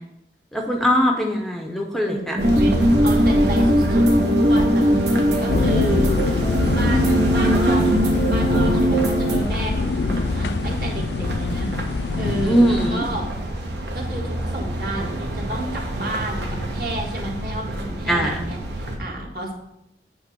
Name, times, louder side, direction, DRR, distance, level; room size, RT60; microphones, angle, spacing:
voice 1, 0.5-2.4 12.4-13.0 18.1-18.3, equal, ahead, 1 dB, 0.6 m, -20 dB
voice 2, 2.0-4.9 5.2-6.3 6.7-11.7 12.1-13.3 13.9-19.5, right 1 dB, 55° right, -1 dB, 1.7 m, -31 dB
sound 1, 2.4-9.4, equal, 35° right, 2.3 m, -19 dB
sound 2, 2.4-19.0, right 1 dB, 80° right, 1.3 m, -28 dB
sound 3, 5.5-12.9, left 4 dB, 70° left, 0.4 m, -24 dB
8.7 x 3.4 x 6.7 m, 0.84 s
head